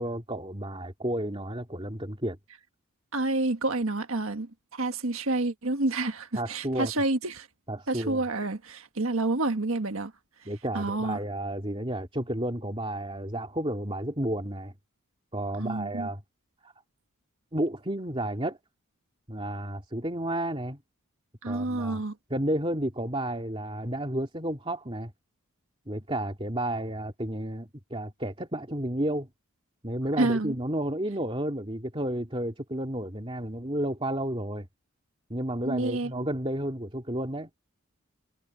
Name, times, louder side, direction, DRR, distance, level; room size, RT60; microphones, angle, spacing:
voice 1, 0.0-2.4 6.3-6.9 7.7-8.2 10.4-14.7 15.3-16.2 16.6-16.7 17.5-18.6 19.3-20.8 21.5-22.0 22.3-25.1 25.9-29.3 29.8-34.7 35.3-37.5, right 1 dB, 25° right, 2.8 m, -31 dB
voice 2, 3.1-7.5 7.9-10.1 10.7-11.2 15.6-16.1 21.4-22.1 30.2-30.5 35.6-36.1, right 2 dB, 70° right, 1.5 m, -29 dB
head